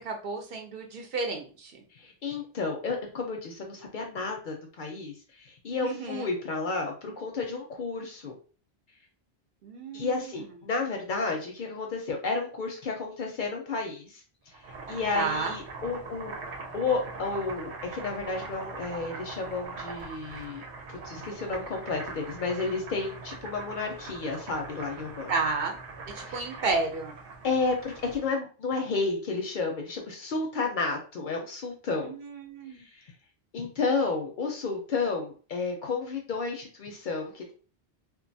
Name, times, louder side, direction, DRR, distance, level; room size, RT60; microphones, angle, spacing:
voice 1, 0.0-1.8 5.8-6.3 9.6-10.3 15.1-15.5 25.3-25.8 26.1-27.1 32.0-32.8, right 4 dB, 65° right, 3 dB, 0.8 m, -32 dB
voice 2, 1.9-8.3 9.9-14.2 14.9-16.3 16.7-20.6 20.9-25.3 26.2-26.5 27.4-32.1 32.8-33.1 33.5-37.5, left 4 dB, 60° left, 2 dB, 0.6 m, -32 dB
Boiling, 14.5-28.3, right 4 dB, 90° right, 1.0 m, -42 dB
2.4 x 2.2 x 2.6 m, 0.38 s
omnidirectional pair, 1.1 m